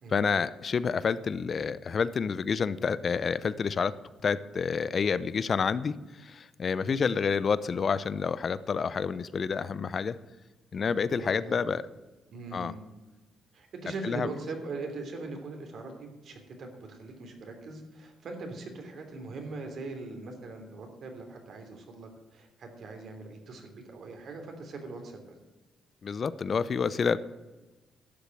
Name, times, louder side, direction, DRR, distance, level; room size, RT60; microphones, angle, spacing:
voice 1, 0.1-3.9 4.2-5.9 6.2-10.2 10.7-11.8 12.5-12.7 14.0-14.3 26.0-27.2, left 6 dB, 45° left, 16 dB, 0.6 m, -28 dB
voice 2, 10.8-11.7 12.3-12.8 13.5-25.4, right 3 dB, 60° right, 4 dB, 3.1 m, -41 dB
11.5 x 6.9 x 9.1 m, 1.1 s
cardioid pair, 90°, 0 cm